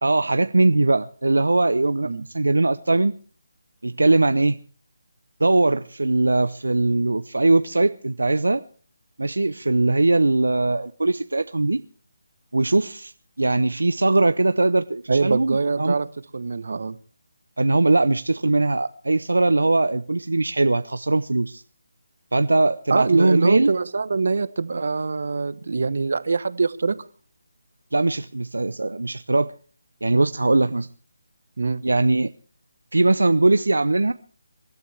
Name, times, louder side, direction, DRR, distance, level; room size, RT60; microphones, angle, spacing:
voice 1, 0.0-3.2 3.8-4.6 5.4-8.6 9.2-11.8 12.5-15.9 17.6-21.6 22.3-23.7 27.9-29.5 30.0-30.9 31.8-32.3 32.9-34.1, right 2 dB, 80° right, 0.6 m, -20 dB
voice 2, 15.1-16.1 16.3-17.0 22.9-27.0 31.6-31.8, right 4 dB, 60° right, 1.0 m, -23 dB
27.0 x 12.5 x 3.4 m
figure-of-eight pair, 155°, 0 cm